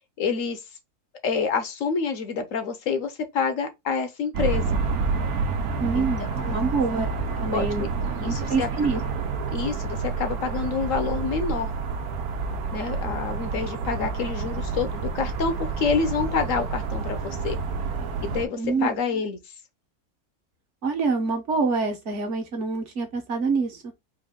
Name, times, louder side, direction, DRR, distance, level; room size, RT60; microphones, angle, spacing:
voice 1, 0.2-0.6 1.2-4.8 5.9-6.7 7.5-7.9 8.2-8.7 9.5-11.7 12.7-17.6 18.2-19.4, left 5 dB, 65° left, 1.0 m, -27 dB
sound 1, 4.3-18.4, right 4 dB, 75° right, 1.2 m, -29 dB
voice 2, 5.8-7.1 7.4-7.8 8.2-9.0 18.6-19.0 20.8-23.9, right 4 dB, 55° right, 1.3 m, -26 dB
4.5 x 2.6 x 3.5 m
omnidirectional pair, 1.6 m